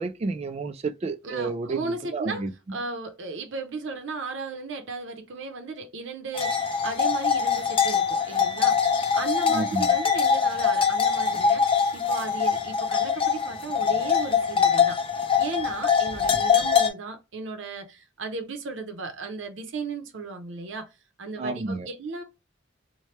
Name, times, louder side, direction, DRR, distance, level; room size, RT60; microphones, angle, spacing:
voice 1, 0.0-2.5 9.5-10.0 21.4-21.9, right 3 dB, 35° right, 0.3 m, -30 dB
voice 2, 1.2-8.9 9.1-15.0 15.4-20.9 21.2-22.2, right 3 dB, 75° right, 0.6 m, -35 dB
sound 1, 6.3-16.9, left 6 dB, 30° left, 0.5 m, -23 dB
3.2 x 2.1 x 2.8 m
head